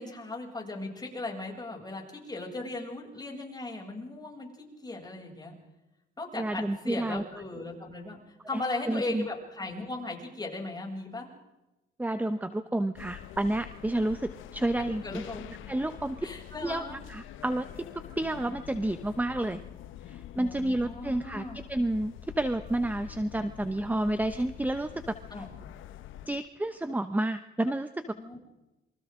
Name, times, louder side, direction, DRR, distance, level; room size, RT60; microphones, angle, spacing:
voice 1, 0.0-5.5 6.2-11.3 14.8-15.4 16.2-17.0 20.3-21.6 25.3-25.5 28.1-28.5, left 2 dB, 20° left, -1 dB, 7.5 m, -37 dB
voice 2, 6.3-7.2 8.5-9.3 12.0-15.2 15.7-16.3 16.6-19.6 20.1-21.4 21.7-25.2 26.3-28.1, right 1 dB, 10° right, 10 dB, 1.0 m, -30 dB
sound 1, 13.0-26.3, left 11 dB, 85° left, 1.1 m, -46 dB
28.0 x 24.5 x 3.8 m, 0.99 s
cardioid pair, 90°, 20 cm